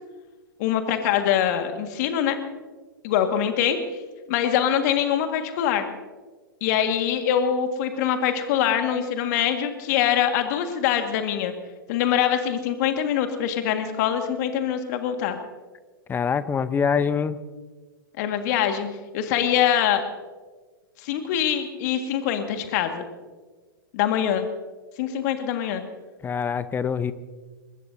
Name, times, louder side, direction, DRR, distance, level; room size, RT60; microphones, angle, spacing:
voice 1, 0.6-2.4 3.0-3.8 4.3-5.9 6.6-11.5 11.9-15.4 18.2-18.9 19.1-20.0 21.0-23.0 23.9-24.4 25.0-25.8, left 9 dB, 50° left, 6 dB, 1.8 m, -23 dB
voice 2, 16.1-17.4 26.2-27.1, left 6 dB, 15° left, 15 dB, 0.7 m, -24 dB
22.5 x 20.5 x 2.7 m, 1.4 s
hypercardioid pair, 105°, 12 cm